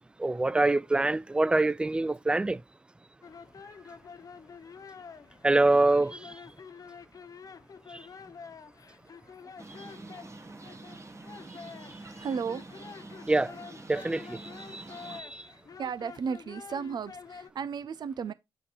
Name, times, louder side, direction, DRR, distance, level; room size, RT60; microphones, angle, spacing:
voice 1, 0.2-2.6 5.4-6.2 13.3-13.5 13.9-14.4 14.7-15.4, right 2 dB, 10° right, 0.4 m, -25 dB
sound 1, 3.2-17.5, left 5 dB, 40° left, 0.7 m, -48 dB
sound 2, 9.6-15.2, right 2 dB, 30° right, 1.6 m, -46 dB
voice 2, 12.2-12.6 14.9-15.0 15.8-18.3, right 6 dB, 50° right, 0.6 m, -34 dB
8.2 x 5.6 x 3.3 m
supercardioid pair, 60°, 9 cm